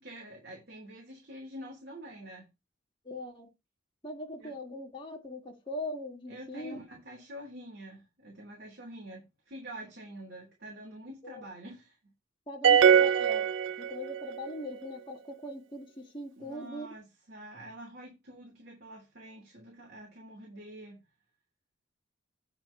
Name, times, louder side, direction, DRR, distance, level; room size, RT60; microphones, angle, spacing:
voice 1, 0.0-2.5 4.4-4.5 6.3-12.0 16.4-21.0, right 1 dB, 55° right, 2.9 m, -46 dB
voice 2, 3.1-3.5 4.0-6.8 11.2-11.4 12.5-13.5 13.8-16.9, left 1 dB, 25° left, 1.8 m, -41 dB
sound 1, 12.6-14.4, right 8 dB, 75° right, 0.5 m, -22 dB
8.8 x 4.1 x 5.5 m
head